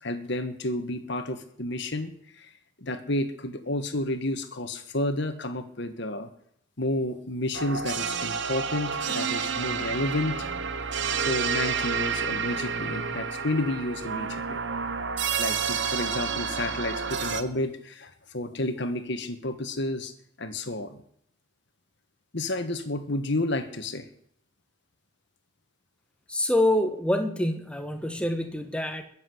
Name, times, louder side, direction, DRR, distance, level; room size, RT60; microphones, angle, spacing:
voice 1, 0.0-2.5 2.8-6.3 6.8-10.4 11.2-14.6 15.4-20.1 20.4-21.0 22.3-24.1, left 1 dB, 55° left, 8 dB, 1.6 m, -31 dB
sound 1, 7.5-17.4, right 6 dB, 55° right, 1.1 m, -30 dB
voice 2, 26.3-29.0, left 1 dB, 5° left, 6 dB, 1.5 m, -26 dB
21.5 x 7.8 x 7.9 m, 0.70 s
head